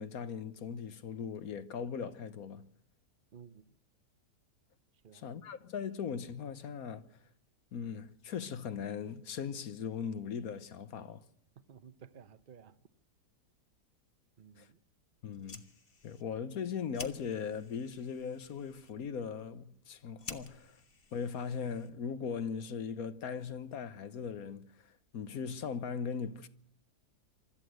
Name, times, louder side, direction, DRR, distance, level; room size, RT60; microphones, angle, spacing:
voice 1, 0.0-2.7 5.1-7.1 7.7-11.2 14.6-14.7 15.2-15.6 16.0-20.8 21.1-26.5, left 6 dB, 65° left, 1.4 m, -39 dB
voice 2, 3.3-3.7 5.0-5.4 11.6-12.8 14.4-14.8, right 7 dB, 40° right, 0.8 m, -55 dB
Fire, 15.3-22.2, left 4 dB, 35° left, 1.4 m, -52 dB
25.0 x 13.5 x 7.8 m
omnidirectional pair, 1.8 m